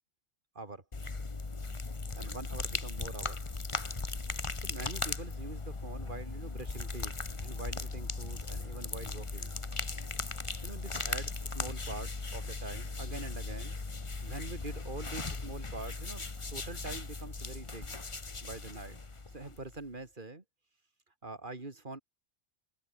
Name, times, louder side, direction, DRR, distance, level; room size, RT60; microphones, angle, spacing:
sound 1, 0.9-19.8, left 3 dB, 25° left, 1.3 m, -38 dB
voice 1, 2.1-3.4 4.6-7.1 7.4-9.6 10.6-13.8 14.2-16.2 16.5-18.0 18.4-19.0 19.3-20.4 21.2-22.0, right 3 dB, 45° right, 3.1 m, -44 dB
omnidirectional pair, 1.2 m